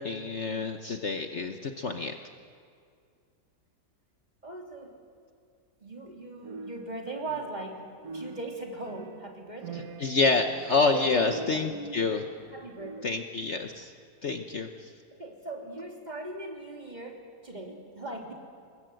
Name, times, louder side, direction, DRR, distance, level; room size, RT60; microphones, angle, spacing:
voice 1, 0.0-2.2 9.7-12.2 13.0-13.9 14.2-14.9, left 3 dB, 50° left, 5 dB, 1.2 m, -28 dB
voice 2, 4.4-5.0 5.8-7.9 8.1-9.9 10.9-11.7 12.5-13.1 15.2-18.3, right 2 dB, 25° right, 0 dB, 3.2 m, -39 dB
sound 1, 6.4-7.8 8.0-13.3, right 4 dB, 65° right, 1.5 m, -44 dB
27.5 x 21.5 x 7.8 m, 2.3 s
omnidirectional pair, 1.7 m